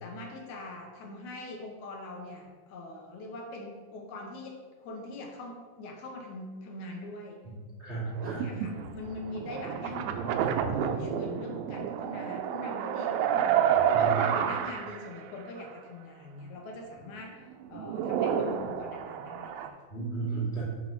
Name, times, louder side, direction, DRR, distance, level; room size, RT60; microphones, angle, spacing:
voice 1, 0.0-7.4 8.2-13.5 13.9-17.4 17.7-19.7, left 2 dB, 80° left, 0 dB, 1.7 m, -42 dB
voice 2, 7.4-8.5 13.9-14.1 19.9-20.6, right 4 dB, 25° left, -9 dB, 1.8 m, -34 dB
sound 1, 8.2-15.2 15.6-15.7 17.5-19.7, right 9 dB, 80° right, 2.2 m, -29 dB
10.0 x 5.4 x 3.1 m, 1.5 s
omnidirectional pair, 4.4 m